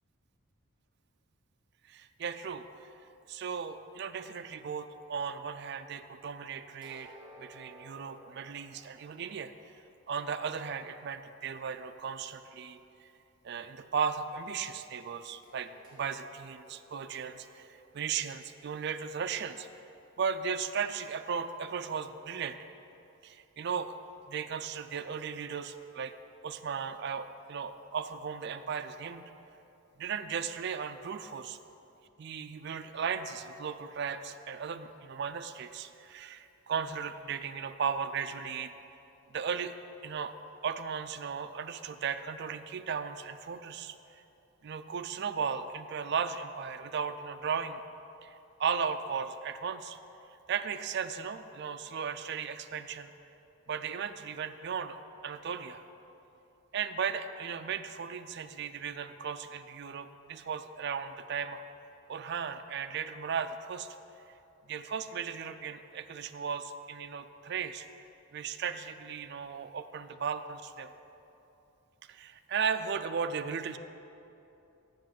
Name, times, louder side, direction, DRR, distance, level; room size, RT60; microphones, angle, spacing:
voice 1, 1.9-2.7 3.3-9.5 10.1-12.8 13.4-19.7 20.2-22.6 23.2-23.9 24.3-26.1 26.4-29.3 30.0-31.6 32.2-38.7 39.3-39.8 40.0-40.3 40.6-44.2 44.6-47.8 48.2-48.3 48.6-50.0 50.5-53.1 53.7-55.0 55.2-55.8 56.7-61.6 62.1-63.9 64.7-67.8 68.3-70.9 72.1-73.8, right 6 dB, 50° right, 8 dB, 0.4 m, -36 dB
sound 1, 6.8-9.5 15.4-19.5, right 1 dB, 20° right, 2.6 m, -56 dB
7.9 x 7.2 x 7.4 m, 2.9 s
head